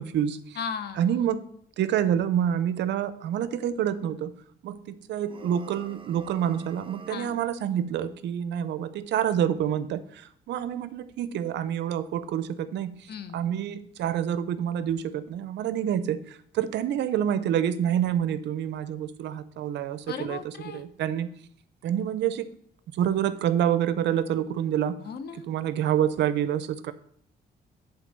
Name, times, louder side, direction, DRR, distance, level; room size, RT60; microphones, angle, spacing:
voice 1, 0.0-0.6 1.0-1.4 1.8-4.3 4.6-20.4 20.7-21.3 21.8-22.5 22.9-25.0 25.5-26.9, right 9 dB, 80° right, 13 dB, 0.6 m, -27 dB
voice 2, 0.6-1.2 7.1-7.3 13.1-13.4 20.1-20.8 25.0-25.5, left 6 dB, 65° left, 10 dB, 0.9 m, -36 dB
sound 1, 5.2-7.5, right 5 dB, 30° right, 0.6 m, -47 dB
8.2 x 3.8 x 6.7 m, 0.65 s
cardioid pair, 90°, 18 cm